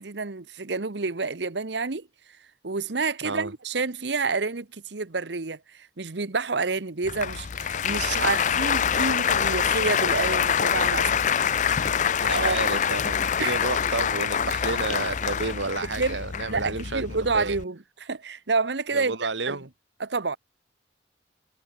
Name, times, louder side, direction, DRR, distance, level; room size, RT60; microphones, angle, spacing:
voice 1, 0.0-2.1 2.6-11.4 12.3-12.6 13.4-13.6 16.0-16.2 16.5-19.1 19.5-19.6 20.0-20.4, right 4 dB, 70° right, 1.1 m, -29 dB
Applause, 7.0-17.6, left 7 dB, 40° left, 0.5 m, -25 dB
voice 2, 12.2-17.6 18.9-19.7, right 3 dB, 90° right, 1.9 m, -31 dB
head